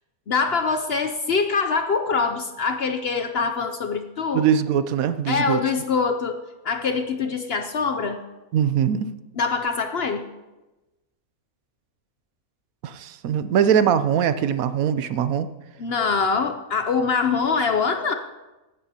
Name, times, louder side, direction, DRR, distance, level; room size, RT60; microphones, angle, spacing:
voice 1, 0.3-4.4 5.3-8.2 9.4-10.2 15.8-18.1, left 5 dB, 55° left, 7 dB, 0.7 m, -24 dB
voice 2, 4.3-5.6 8.5-9.1 12.8-15.5, right 8 dB, 75° right, 12 dB, 1.1 m, -21 dB
16.5 x 12.0 x 2.9 m, 1.1 s
omnidirectional pair, 1.5 m